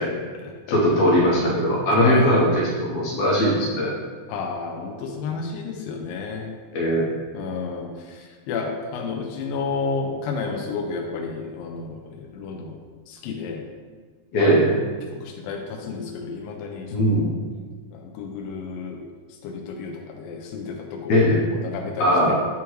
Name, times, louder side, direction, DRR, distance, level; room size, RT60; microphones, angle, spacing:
voice 1, 0.0-1.1 2.0-2.5 4.3-6.5 7.3-12.7 13.1-13.6 14.3-14.5 15.1-17.3 17.9-19.1 19.4-22.4, left 4 dB, 90° left, 1 dB, 2.4 m, -31 dB
voice 2, 0.7-3.9 6.7-7.1 14.3-14.8 16.9-17.4 21.1-21.5 22.0-22.3, equal, 70° left, -4 dB, 1.8 m, -19 dB
9.8 x 3.5 x 3.0 m, 1.5 s
omnidirectional pair, 3.9 m